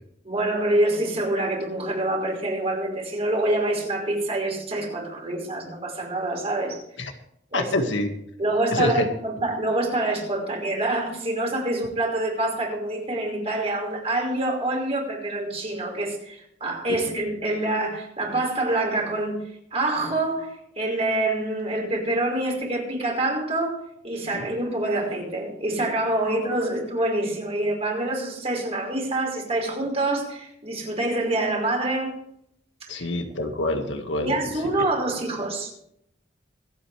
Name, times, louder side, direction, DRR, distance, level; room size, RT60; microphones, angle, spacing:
voice 1, 0.2-7.2 7.5-7.7 8.4-19.4 19.7-23.8 24.0-32.1 32.9-33.0 34.2-35.7, right 2 dB, 35° right, 0 dB, 5.2 m, -26 dB
voice 2, 7.5-8.1 8.7-9.1 24.3-24.5 32.9-34.4 34.8-34.9, left 1 dB, 90° left, 4 dB, 1.9 m, -26 dB
26.0 x 8.9 x 3.4 m, 0.72 s
head